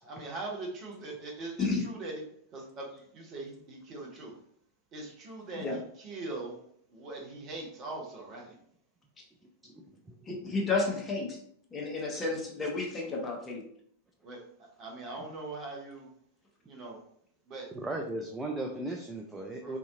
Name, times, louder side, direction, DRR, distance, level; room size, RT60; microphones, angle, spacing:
voice 1, 0.0-2.2 2.5-4.3 4.9-6.6 6.9-8.6 14.2-16.1 16.6-17.0 17.5-17.7 19.6-19.8, right 2 dB, 35° right, 0 dB, 0.9 m, -41 dB
voice 2, 9.7-10.1 17.7-19.8, right 2 dB, 10° right, 1 dB, 0.4 m, -36 dB
voice 3, 10.3-11.4 11.7-13.6, left 3 dB, 20° left, -1 dB, 0.9 m, -31 dB
3.7 x 2.8 x 2.5 m, 0.66 s
figure-of-eight pair, 90°, 0 cm